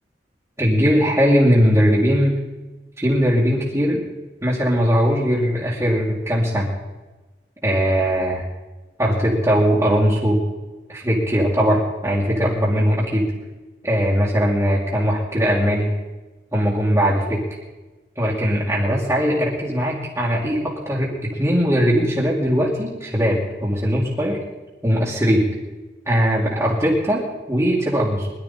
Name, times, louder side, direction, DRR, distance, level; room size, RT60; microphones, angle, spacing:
voice 1, 0.6-2.3 3.0-4.0 4.4-6.7 7.6-8.4 9.0-10.4 10.9-13.3 13.8-15.9 16.5-17.4 18.2-24.4 24.8-25.5 26.1-28.3, equal, 15° right, -7 dB, 2.5 m, -19 dB
21.5 x 12.0 x 4.3 m, 1.2 s
head